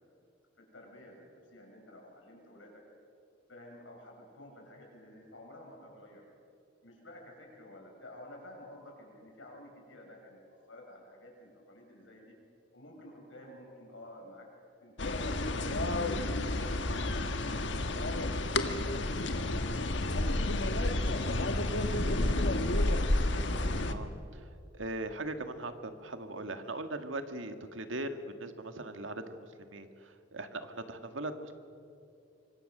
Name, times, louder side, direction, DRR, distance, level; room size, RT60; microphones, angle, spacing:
voice 1, 0.6-2.8 3.5-6.2 6.8-10.4 10.7-12.3 12.7-14.5 14.8-15.5 15.8-16.8 17.3-20.5 20.8-21.3 22.2-23.0, left 1 dB, 90° left, 0 dB, 6.6 m, -52 dB
sound 1, 15.0-23.9, left 1 dB, 65° left, 1.4 m, -30 dB
voice 2, 23.9-24.4 24.7-31.5, right 2 dB, 85° right, 8 dB, 1.8 m, -40 dB
26.0 x 24.0 x 6.7 m, 2.5 s
head